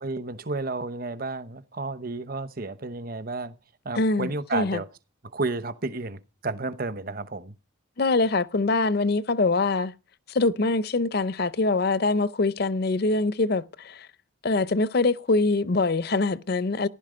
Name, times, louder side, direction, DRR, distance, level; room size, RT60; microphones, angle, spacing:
voice 1, 0.0-3.5 3.8-4.9 5.3-7.5, right 3 dB, 45° right, 0.9 m, -32 dB
voice 2, 3.9-4.8 8.0-9.9 10.3-14.1 14.4-16.9, left 3 dB, 50° left, 0.6 m, -24 dB
15.0 x 11.5 x 5.1 m
head